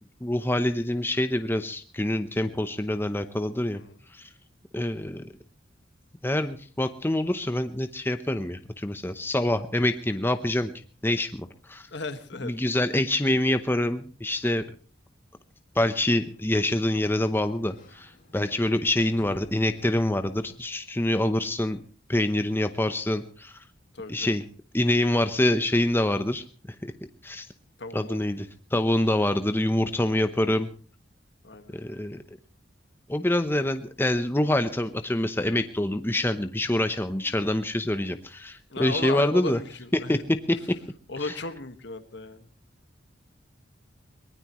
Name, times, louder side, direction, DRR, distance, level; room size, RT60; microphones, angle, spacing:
voice 1, 0.2-3.8 4.1-4.3 4.7-5.3 6.2-10.7 11.0-11.9 12.4-14.6 15.8-21.8 22.1-23.6 24.1-24.4 24.7-26.4 26.8-26.9 27.2-27.5 27.9-30.7 31.7-32.2 33.1-39.6 39.9-40.2 41.2-41.3, left 1 dB, 10° left, 8 dB, 0.8 m, -26 dB
voice 2, 11.9-12.5 23.9-24.4 27.8-28.2 31.4-31.8 38.7-40.2 41.1-42.5, left 3 dB, 65° left, 9 dB, 1.7 m, -35 dB
Sliding door, 16.0-20.8, left 1 dB, 50° left, 6.4 m, -54 dB
23.0 x 19.5 x 3.1 m, 0.39 s
head